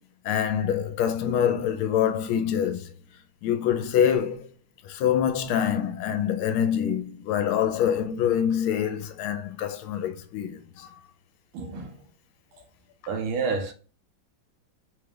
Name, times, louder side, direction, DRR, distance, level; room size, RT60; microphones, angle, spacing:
voice 1, 0.2-2.9 3.4-4.5 4.8-10.9, left 9 dB, 80° left, 1.4 m, -25 dB
voice 2, 11.5-11.9 13.1-13.7, right 4 dB, 80° right, 1.6 m, -29 dB
4.0 x 2.4 x 3.2 m
omnidirectional pair, 2.3 m